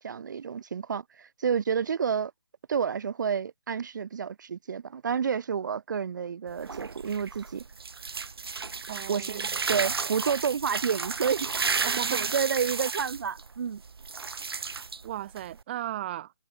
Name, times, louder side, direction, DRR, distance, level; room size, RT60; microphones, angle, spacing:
voice 1, 0.0-2.3 2.7-7.6 9.1-9.4 9.7-11.7 12.1-13.8, right 7 dB, 50° right, 0.9 m, -30 dB
sound 1, 6.5-15.6, right 4 dB, 70° right, 5.4 m, -33 dB
voice 2, 8.9-9.5 11.8-12.3 15.0-16.3, right 13 dB, 25° right, 1.2 m, -35 dB
hypercardioid pair, 160°, 13 cm